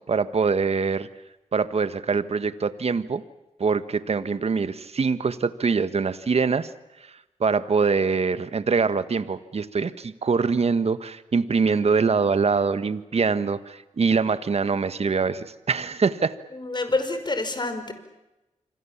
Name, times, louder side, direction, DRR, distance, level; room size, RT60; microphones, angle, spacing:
voice 1, 0.1-1.1 1.5-3.2 3.6-6.7 7.0-7.1 7.4-16.3, right 5 dB, 55° right, 13 dB, 1.5 m, -24 dB
voice 2, 16.5-17.9, left 2 dB, 35° left, 9 dB, 5.1 m, -27 dB
27.0 x 24.5 x 7.3 m, 0.97 s
cardioid pair, 60°, 12 cm